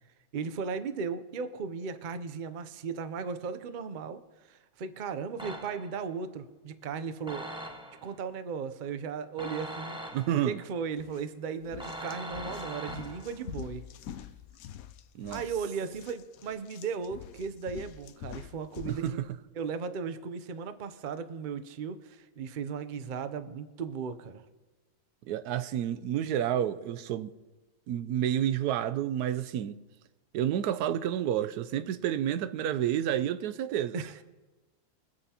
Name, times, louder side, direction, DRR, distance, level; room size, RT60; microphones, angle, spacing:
voice 1, 0.3-4.2 4.5-7.5 8.0-10.0 10.4-13.8 15.3-19.0 19.6-24.4 33.9-34.2, right 6 dB, 50° right, 0.6 m, -36 dB
sound 1, 5.4-6.1 7.3-8.2 9.4-10.6 11.8-13.5, right 1 dB, 5° right, 0.8 m, -41 dB
voice 2, 10.1-10.6 15.1-15.4 18.9-19.3 25.3-27.3 27.9-29.8 30.3-34.0, right 10 dB, 85° right, 1.1 m, -30 dB
sound 2, 11.0-11.2 11.6-19.1, left 10 dB, 75° left, 1.0 m, -46 dB
23.5 x 8.8 x 2.9 m
omnidirectional pair, 1.6 m